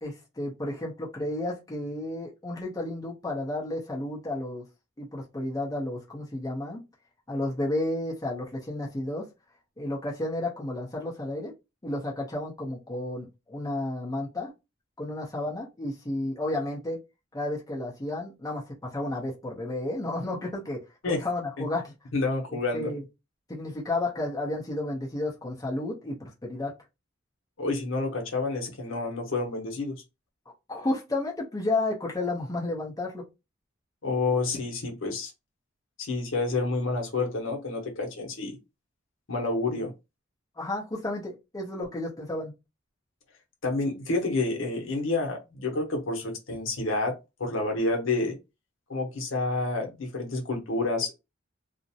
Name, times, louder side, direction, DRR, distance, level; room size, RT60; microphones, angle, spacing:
voice 1, 0.0-4.6 5.0-6.8 7.3-9.2 9.8-11.5 11.8-14.5 15.0-17.0 17.3-20.8 21.1-21.9 22.7-23.0 23.5-26.7 30.7-33.3 39.6-39.8 40.6-42.5, left 2 dB, 20° left, 0.6 m, -32 dB
voice 2, 22.1-22.9 27.6-29.9 34.0-35.3 36.0-38.6 39.3-39.9 43.6-48.4 48.9-51.1, left 3 dB, 80° left, 0.8 m, -29 dB
2.4 x 2.0 x 2.7 m
head